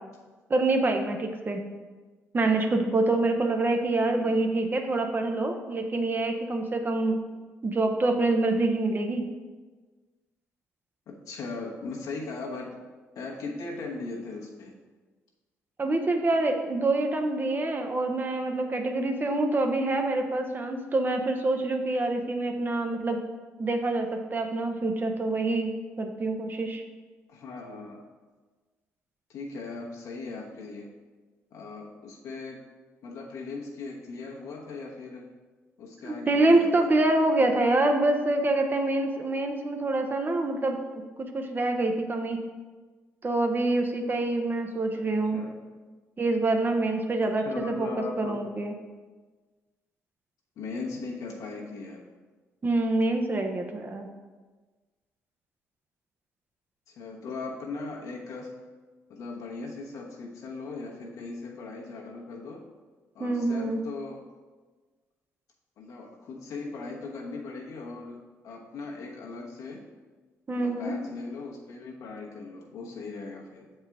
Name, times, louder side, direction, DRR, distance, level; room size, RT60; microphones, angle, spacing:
voice 1, 0.5-1.6 2.3-7.2 7.6-9.3 15.8-23.2 23.6-26.8 36.0-40.8 41.2-42.4 43.2-45.4 46.2-47.9 48.2-48.7 52.6-54.1 63.2-63.8 70.5-70.9, right 2 dB, 35° right, 4 dB, 0.8 m, -26 dB
voice 2, 11.1-12.8 13.1-14.7 27.3-28.0 29.3-30.9 31.5-32.6 33.0-35.3 35.8-36.7 44.9-45.0 45.3-45.5 47.2-48.4 50.6-52.0 56.9-58.5 59.1-62.6 63.1-64.2 65.8-68.2 68.4-69.8 70.5-73.6, left 3 dB, 70° left, -2 dB, 1.2 m, -38 dB
7.2 x 4.4 x 3.5 m, 1.3 s
supercardioid pair, 60°, 6 cm